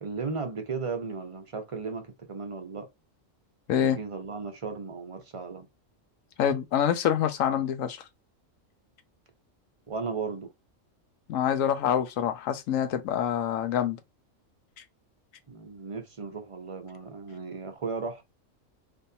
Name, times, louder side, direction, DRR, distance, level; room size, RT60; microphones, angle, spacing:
voice 1, 0.0-2.9 3.8-5.7 9.9-10.5 15.5-18.2, right 4 dB, 35° right, 0.6 m, -35 dB
voice 2, 6.4-8.1 11.3-14.0 14.8-14.9, left 9 dB, 85° left, 1.0 m, -26 dB
3.5 x 2.6 x 2.7 m
omnidirectional pair, 1.4 m